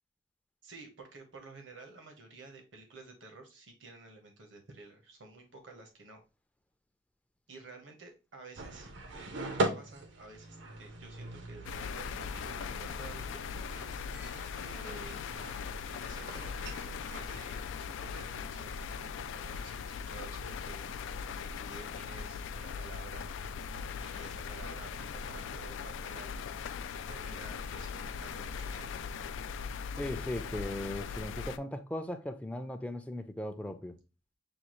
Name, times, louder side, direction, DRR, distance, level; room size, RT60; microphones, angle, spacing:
voice 1, 0.6-6.2 7.5-13.7 14.6-15.2 16.0-19.0 19.4-23.3 24.0-26.3 27.1-28.9, right 3 dB, 85° right, 1.1 m, -51 dB
sound 1, 8.5-17.3, right 2 dB, 70° right, 0.6 m, -40 dB
sound 2, 11.6-31.6, left 6 dB, 90° left, 0.3 m, -40 dB
voice 2, 30.0-34.0, left 1 dB, 5° left, 0.4 m, -38 dB
6.8 x 2.3 x 3.0 m
head